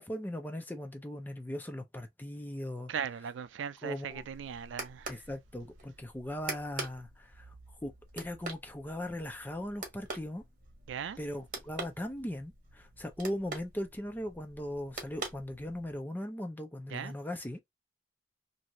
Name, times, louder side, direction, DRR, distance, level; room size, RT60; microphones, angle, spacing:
voice 1, 0.0-2.9 3.8-4.2 5.1-7.5 7.8-10.4 11.2-17.6, left 1 dB, 10° left, 0.5 m, -39 dB
voice 2, 2.9-5.2 10.9-11.2 16.9-17.1, right 7 dB, 90° right, 0.4 m, -38 dB
sound 1, 4.1-16.0, right 3 dB, 50° right, 1.1 m, -45 dB
2.7 x 2.4 x 2.9 m
head